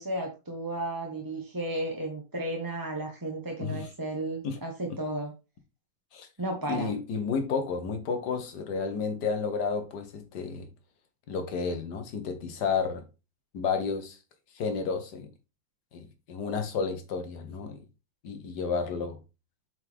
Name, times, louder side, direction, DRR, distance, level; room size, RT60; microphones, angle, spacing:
voice 1, 0.0-5.3 6.4-6.9, right 1 dB, 15° right, 1.0 m, -33 dB
voice 2, 6.7-10.7 11.3-13.0 13.5-14.2 14.5-15.3 15.9-17.8 18.2-19.2, left 5 dB, 65° left, 1.6 m, -31 dB
7.9 x 4.7 x 3.5 m
omnidirectional pair, 2.0 m